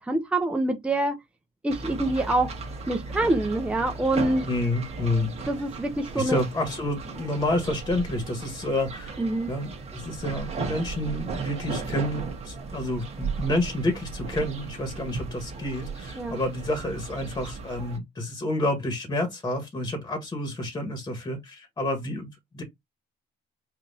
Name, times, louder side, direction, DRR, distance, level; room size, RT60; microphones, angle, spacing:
voice 1, 0.1-1.2 1.6-2.5 2.9-4.5 5.5-6.4 9.2-9.5 16.2-16.4, right 2 dB, 5° right, 0.8 m, -25 dB
sound 1, 1.7-18.0, right 4 dB, 35° right, 1.5 m, -36 dB
voice 2, 4.4-5.3 6.1-9.2 9.5-22.6, left 1 dB, 20° left, 1.5 m, -29 dB
5.2 x 2.8 x 2.7 m
cardioid pair, 110°, 17 cm